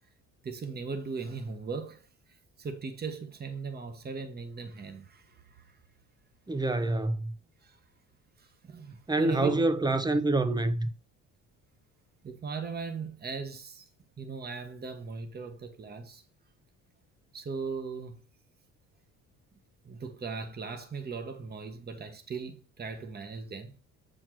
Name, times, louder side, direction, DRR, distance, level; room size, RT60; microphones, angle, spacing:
voice 1, 0.4-5.8 7.6-7.8 8.4-9.6 12.2-13.8 14.2-16.2 17.3-18.2 19.8-23.8, right 5 dB, 30° right, 1.3 m, -38 dB
voice 2, 6.5-7.3 9.1-10.9, right 2 dB, 10° right, 0.7 m, -26 dB
7.4 x 4.5 x 4.5 m
cardioid pair, 110°, 33 cm